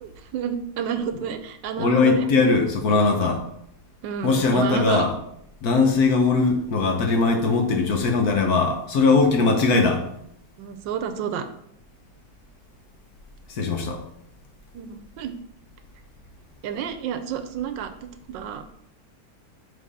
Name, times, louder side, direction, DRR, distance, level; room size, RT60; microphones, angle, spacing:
voice 1, 0.0-2.3 2.9-3.3 4.0-5.0 9.4-9.5 10.6-11.5 14.7-15.3 16.6-18.6, right 8 dB, 80° right, 9 dB, 1.3 m, -30 dB
voice 2, 1.8-3.4 4.2-5.1 5.6-10.0 13.5-14.0, left 4 dB, 60° left, 3 dB, 1.4 m, -20 dB
6.3 x 3.9 x 5.4 m, 0.73 s
omnidirectional pair, 2.0 m